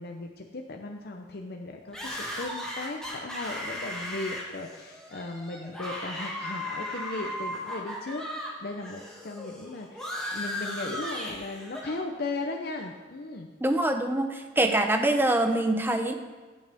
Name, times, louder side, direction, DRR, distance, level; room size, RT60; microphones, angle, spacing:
voice 1, 0.0-8.2 8.6-13.5, left 2 dB, 60° left, 3 dB, 0.7 m, -37 dB
sound 1, 1.9-8.5 8.8-12.0, left 1 dB, 5° left, 2.2 m, -36 dB
voice 2, 13.6-16.1, right 1 dB, 10° right, 5 dB, 0.8 m, -24 dB
17.0 x 6.7 x 3.5 m, 1.4 s
head